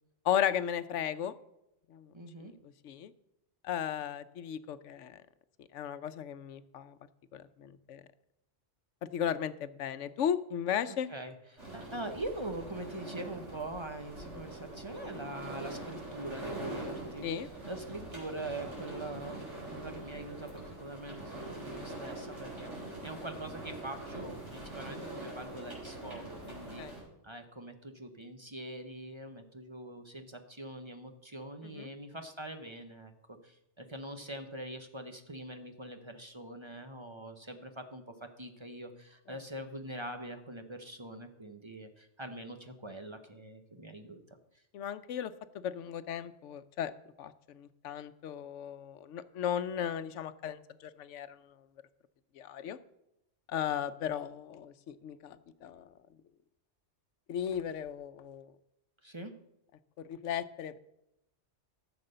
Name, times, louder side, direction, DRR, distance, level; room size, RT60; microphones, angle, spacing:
voice 1, 0.2-1.3 1.9-2.1 2.4-2.5 2.8-3.1 3.6-5.2 5.7-7.0 7.3-8.0 9.0-11.1 17.2-17.5 26.8-26.9 31.6-31.9 44.7-46.9 47.2-51.4 52.4-52.8 53.5-55.9 57.3-58.5 60.1-60.8, left 9 dB, 85° left, 14 dB, 1.0 m, -35 dB
voice 2, 2.1-2.5 11.1-19.4 19.7-44.2 59.0-59.3, right 1 dB, 25° right, 6 dB, 0.9 m, -43 dB
sound 1, 11.6-27.0, right 1 dB, 80° right, 4.9 m, -43 dB
13.5 x 7.0 x 6.6 m, 0.84 s
omnidirectional pair, 1.2 m